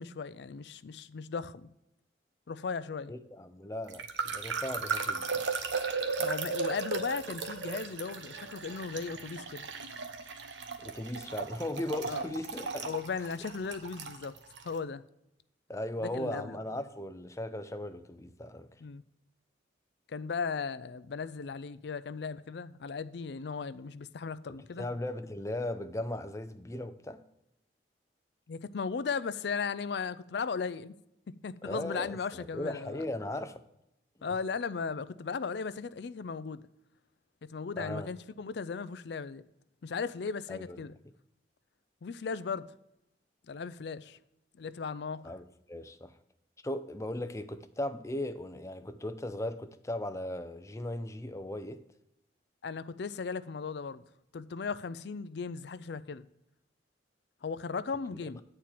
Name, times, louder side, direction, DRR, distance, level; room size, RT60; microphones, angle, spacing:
voice 1, 0.0-1.7 2.5-3.1 6.2-9.7 12.1-12.3 12.8-14.4 14.6-15.0 16.0-16.6 18.8-19.0 20.1-24.9 28.5-30.9 31.4-33.1 34.2-36.7 37.5-39.4 39.8-40.9 42.0-42.7 43.5-44.2 44.6-45.3 52.6-54.0 54.3-56.3 57.4-58.4, left 5 dB, 65° left, 0.4 m, -36 dB
voice 2, 3.1-5.5 10.8-12.9 15.7-18.8 24.5-27.2 31.6-33.6 37.8-38.1 40.5-40.8 45.2-46.2 46.6-51.8, left 1 dB, 15° left, 0.5 m, -37 dB
sound 1, 3.9-14.7, right 5 dB, 80° right, 0.9 m, -36 dB
8.5 x 4.4 x 7.3 m
head